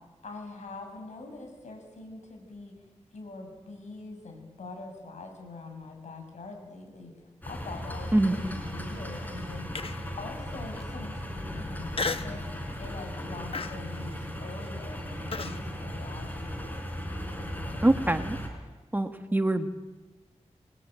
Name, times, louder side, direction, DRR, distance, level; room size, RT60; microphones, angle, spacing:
voice 1, 0.2-2.8 3.1-7.1 7.5-9.7 10.2-16.7, left 3 dB, 85° left, 3 dB, 7.0 m, -43 dB
sound 1, 7.4-18.5, equal, 15° left, 5.0 m, -37 dB
Human voice, 9.8-10.2 10.7-10.8 11.9-12.4 12.8-13.1 13.5-15.6, left 4 dB, 50° left, 1.2 m, -34 dB
voice 2, 17.8-18.4 18.9-19.7, right 1 dB, 15° right, 7 dB, 1.5 m, -24 dB
29.0 x 21.5 x 9.0 m, 1.2 s
wide cardioid pair, 120°, 12 cm